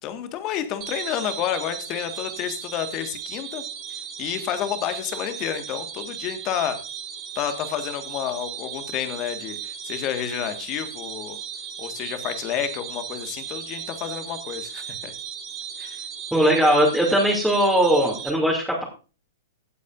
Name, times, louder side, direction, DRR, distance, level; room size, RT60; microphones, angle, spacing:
voice 1, 0.0-3.6 4.2-6.8 7.3-11.4 11.8-15.1 15.8-16.0, left 10 dB, 35° left, 8 dB, 1.6 m, -30 dB
sound 1, 0.8-18.3, right 8 dB, 30° right, 2.1 m, -36 dB
voice 2, 16.3-18.8, right 1 dB, 5° right, -5 dB, 2.6 m, -19 dB
16.5 x 8.3 x 2.6 m, 0.33 s
figure-of-eight pair, 105°, 0 cm